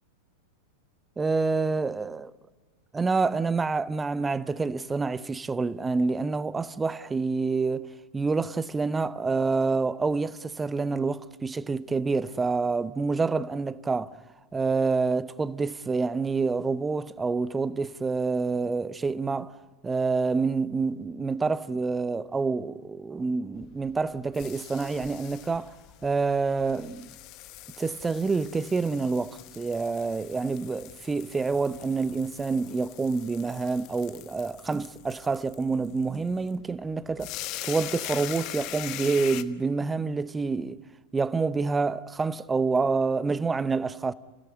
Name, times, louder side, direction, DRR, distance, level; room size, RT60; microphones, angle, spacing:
voice 1, 1.2-2.3 2.9-14.2 14.5-19.5 19.8-25.7 26.0-27.1 27.8-37.3 37.6-40.8 41.1-44.1, right 4 dB, 15° right, 0.7 m, -27 dB
sound 1, 23.6-39.4, left 15 dB, 40° left, 1.0 m, -42 dB
29.0 x 17.0 x 9.7 m
figure-of-eight pair, 90°, 0 cm